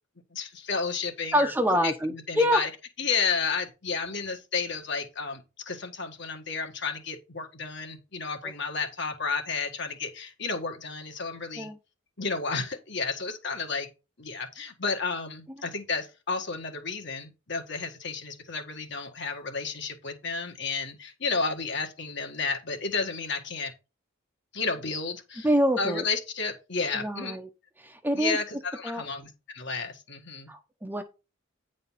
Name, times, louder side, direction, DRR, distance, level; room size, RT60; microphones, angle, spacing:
voice 1, 0.3-2.7 3.0-11.7 12.2-13.9 14.2-23.7 24.5-25.5 25.8-27.4 28.1-30.5, left 4 dB, 60° left, 1.7 m, -32 dB
voice 2, 1.3-2.6 8.4-8.5 11.6-11.8 25.4-26.0 26.9-27.5 27.8-28.4 28.8-29.0 30.5-31.0, equal, 10° right, 0.8 m, -26 dB
9.5 x 4.1 x 5.6 m
head